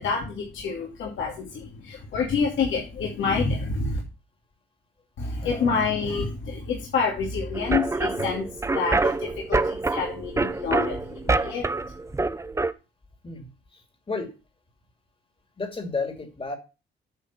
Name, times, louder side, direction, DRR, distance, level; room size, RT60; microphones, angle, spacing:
voice 1, 0.0-4.0 5.2-11.7, left 5 dB, 75° left, -2 dB, 2.8 m, -28 dB
voice 2, 5.4-5.8 13.2-14.3 15.6-16.6, left 3 dB, 25° left, 6 dB, 2.6 m, -33 dB
sound 1, 7.5-12.7, right 3 dB, 15° right, 0.6 m, -26 dB
9.5 x 5.8 x 5.9 m, 0.30 s
cardioid pair, 90°, 20 cm